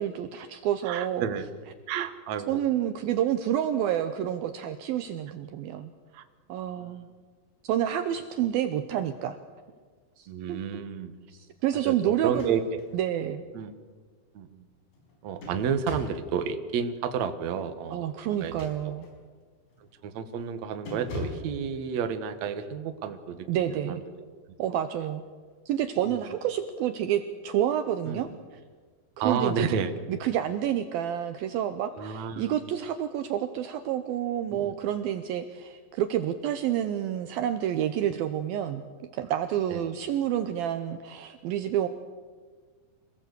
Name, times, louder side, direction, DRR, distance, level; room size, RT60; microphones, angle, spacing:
voice 1, 0.0-1.3 2.5-5.9 6.5-7.1 7.6-9.4 10.2-10.6 11.3-12.6 12.9-13.4 17.9-19.1 23.5-24.0 24.6-25.2 25.7-28.3 29.2-29.5 30.1-38.8 39.1-41.9, right 10 dB, 85° right, 9 dB, 2.1 m, -29 dB
voice 2, 0.8-1.4 1.9-2.6 6.1-6.2 6.8-7.0 10.3-11.1 11.8-12.6 13.5-13.7 14.3-14.6 15.2-18.5 20.0-24.0 24.7-24.8 26.1-26.2 28.1-28.3 29.2-29.9 32.0-32.5 34.5-34.7 38.1-38.2 39.7-39.8, right 7 dB, 65° right, 8 dB, 1.8 m, -31 dB
sound 1, 12.2-12.9 13.4-13.5 14.9-16.3 18.3-19.2 19.7-19.9 20.3-20.5 20.9-21.6, left 3 dB, 80° left, 7.1 m, -41 dB
26.5 x 17.5 x 8.2 m, 1.5 s
omnidirectional pair, 5.4 m